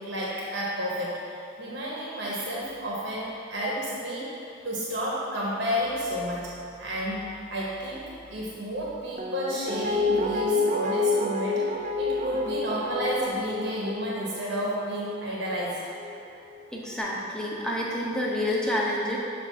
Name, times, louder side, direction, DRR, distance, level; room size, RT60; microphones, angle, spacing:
voice 1, 0.0-6.5 6.8-15.8, equal, 60° right, -5 dB, 0.9 m, -31 dB
Guitar, 9.2-16.2 16.5-16.6, left 3 dB, 40° right, 0.4 m, -29 dB
voice 2, 16.7-19.2, left 1 dB, 5° left, -4 dB, 0.7 m, -28 dB
7.3 x 2.5 x 5.6 m, 2.5 s
head